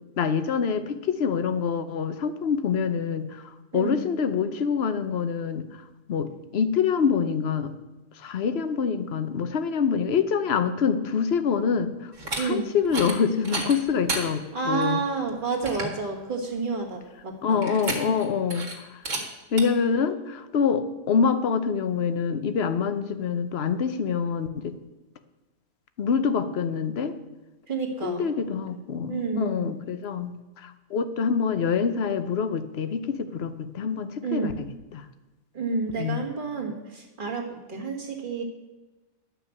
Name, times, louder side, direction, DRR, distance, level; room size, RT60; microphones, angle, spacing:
voice 1, 0.2-3.4 3.7-5.8 6.1-7.7 8.2-12.1 12.4-15.0 17.4-19.0 19.5-24.8 26.0-27.1 28.0-34.5 34.9-35.0 36.0-36.2, left 6 dB, 50° left, 10 dB, 0.9 m, -26 dB
voice 2, 3.7-4.0 12.3-12.7 14.5-17.7 27.7-28.3 29.1-29.7 34.2-34.6 35.5-38.4, right 4 dB, 30° right, 0 dB, 2.0 m, -30 dB
sound 1, 12.1-12.4 12.8-13.2 13.4-14.2 14.8-14.9 15.3-15.4 15.6-16.0 17.6-18.2 18.5-18.7 19.0-19.2 19.6-19.7, right 3 dB, 50° right, 2.3 m, -31 dB
11.5 x 6.0 x 8.4 m, 1.1 s
omnidirectional pair, 1.8 m